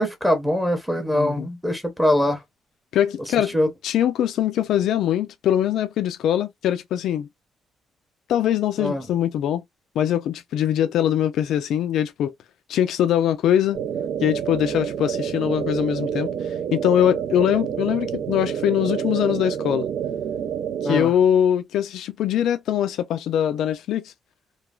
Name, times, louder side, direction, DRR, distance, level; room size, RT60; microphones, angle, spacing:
voice 1, 0.0-2.4 3.5-3.7 8.8-9.0 20.8-21.1, left 1 dB, 5° right, 0.6 m, -22 dB
voice 2, 1.1-1.5 2.9-3.6 3.8-7.3 8.3-9.6 10.0-12.3 12.7-13.8 14.2-19.9 20.8-24.1, left 10 dB, 70° left, 0.3 m, -22 dB
sound 1, 13.7-21.0, right 8 dB, 65° right, 0.3 m, -28 dB
3.1 x 2.3 x 2.3 m
cardioid pair, 155°, 0 cm